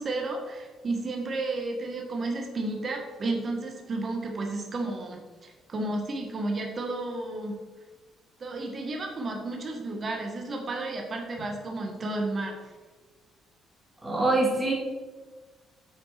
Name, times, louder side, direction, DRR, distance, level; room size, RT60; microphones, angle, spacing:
voice 1, 0.0-7.6 8.4-12.6, right 2 dB, 30° right, 1 dB, 1.6 m, -32 dB
voice 2, 14.0-14.7, right 2 dB, 10° right, -2 dB, 2.2 m, -24 dB
9.0 x 6.2 x 5.9 m, 1.3 s
cardioid pair, 165°, 0 cm